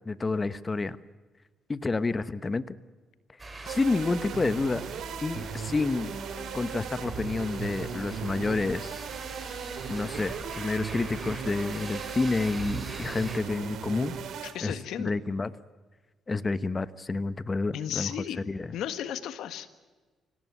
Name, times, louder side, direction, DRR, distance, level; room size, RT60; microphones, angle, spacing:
voice 1, 0.0-1.0 1.7-2.8 3.6-4.8 5.2-6.1 6.5-9.1 9.9-14.1 14.6-15.5 16.3-18.1 18.5-18.7, left 3 dB, 25° left, 14 dB, 1.1 m, -29 dB
sound 1, 3.4-13.4, right 2 dB, 25° right, 5.6 m, -43 dB
sound 2, 3.7-14.5, right 7 dB, 75° right, 3.2 m, -37 dB
voice 2, 14.5-15.1 17.7-18.4 18.7-19.7, left 10 dB, 80° left, 12 dB, 1.5 m, -34 dB
25.5 x 18.0 x 9.5 m, 1.3 s
cardioid pair, 90°, 0 cm